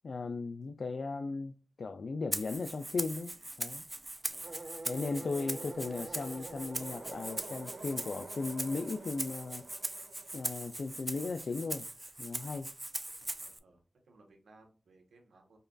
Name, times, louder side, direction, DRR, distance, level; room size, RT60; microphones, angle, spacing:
voice 1, 0.0-3.8 4.9-9.7 10.3-11.9 12.2-12.7, left 3 dB, 70° left, 0.3 m, -37 dB
Rattle (instrument), 2.3-13.6, right 1 dB, 20° right, 0.4 m, -41 dB
sound 1, 4.4-11.4, right 3 dB, 65° right, 0.8 m, -48 dB
voice 2, 4.9-5.7 13.2-15.6, right 2 dB, 90° right, 1.1 m, -60 dB
5.2 x 2.3 x 2.4 m
cardioid pair, 65°, 0 cm